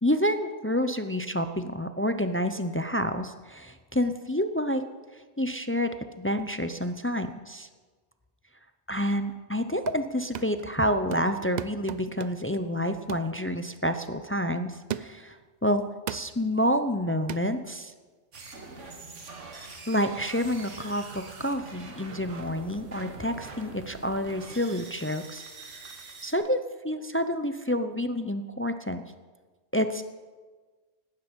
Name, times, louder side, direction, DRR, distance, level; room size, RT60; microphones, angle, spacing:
voice 1, 0.0-4.8 5.4-7.7 8.9-15.8 16.1-17.9 19.9-25.4 26.2-29.0 29.7-30.0, equal, 20° left, 9 dB, 0.3 m, -28 dB
sound 1, 9.6-10.1 10.3-10.7 11.1-12.5 13.1-13.3 13.8-14.0 14.9-15.3 16.1-16.4 17.3-17.5, right 9 dB, 55° right, 0.5 m, -37 dB
sound 2, 18.3-26.3, right 3 dB, 80° right, 2.0 m, -44 dB
17.5 x 12.5 x 5.3 m, 1.4 s
omnidirectional pair, 1.2 m